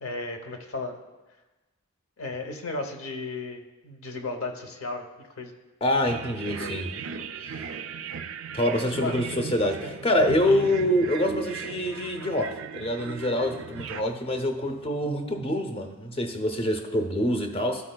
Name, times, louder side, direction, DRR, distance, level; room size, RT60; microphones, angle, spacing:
voice 1, 0.0-1.0 2.2-5.5 6.6-7.0 9.0-10.0 10.4-10.7, left 2 dB, 65° left, 4 dB, 0.8 m, -35 dB
voice 2, 5.8-6.9 7.4-7.7 8.5-17.9, left 1 dB, 25° left, 5 dB, 0.6 m, -26 dB
sound 1, 6.1-14.0, right 7 dB, 60° right, 0.3 m, -37 dB
12.5 x 4.9 x 2.2 m, 1.2 s
head